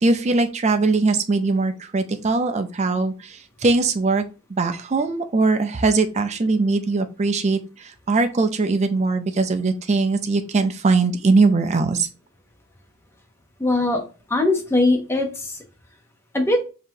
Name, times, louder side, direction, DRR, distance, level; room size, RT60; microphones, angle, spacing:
voice 1, 0.0-4.2 4.5-12.1, right 3 dB, 30° right, 7 dB, 0.4 m, -21 dB
voice 2, 13.6-14.0 14.3-15.6 16.3-16.6, left 2 dB, 10° left, 2 dB, 0.7 m, -20 dB
5.2 x 2.9 x 2.7 m, 0.33 s
head